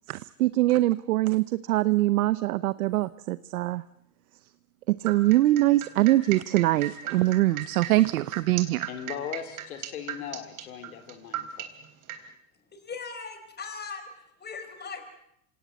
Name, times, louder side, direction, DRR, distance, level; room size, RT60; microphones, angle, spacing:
voice 1, 0.1-3.8 4.9-8.9, right 16 dB, 90° right, 15 dB, 0.8 m, -23 dB
sound 1, 5.1-12.2, right 12 dB, 45° right, 3.7 m, -36 dB
voice 2, 8.9-11.7, left 9 dB, 90° left, 8 dB, 3.2 m, -38 dB
voice 3, 12.7-15.0, left 5 dB, 25° left, 7 dB, 4.6 m, -39 dB
26.5 x 18.0 x 8.3 m, 0.76 s
supercardioid pair, 105°, 42 cm